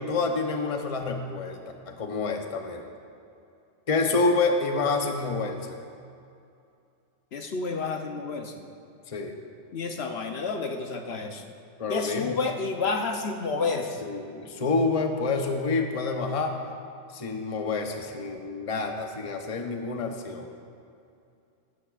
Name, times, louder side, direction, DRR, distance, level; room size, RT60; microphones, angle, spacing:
voice 1, 0.0-1.6 1.9-2.9 3.9-5.8 9.1-9.3 11.8-12.4 14.0-16.6 17.1-20.5, left 3 dB, 35° left, 4 dB, 0.8 m, -28 dB
voice 2, 7.3-8.6 9.7-11.4 11.9-14.0, left 4 dB, 65° left, 4 dB, 1.0 m, -30 dB
16.5 x 12.5 x 2.4 m, 2.5 s
omnidirectional pair, 1.2 m